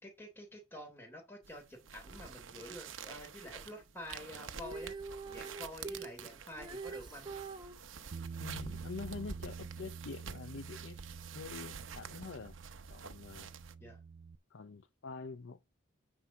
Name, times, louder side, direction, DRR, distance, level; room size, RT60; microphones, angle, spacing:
voice 1, 0.0-5.0 5.3-7.3 13.8-14.0, left 1 dB, 10° left, 3.2 m, -49 dB
sound 1, 1.4-13.7, right 6 dB, 85° right, 0.8 m, -48 dB
Female singing, 4.5-7.8 9.7-9.8, right 4 dB, 20° right, 0.8 m, -44 dB
Bass guitar, 8.1-14.4, right 5 dB, 50° right, 0.5 m, -48 dB
voice 2, 8.4-11.0 11.3-12.6 12.9-13.5 14.5-15.6, left 4 dB, 70° left, 0.5 m, -45 dB
9.5 x 4.5 x 5.6 m
head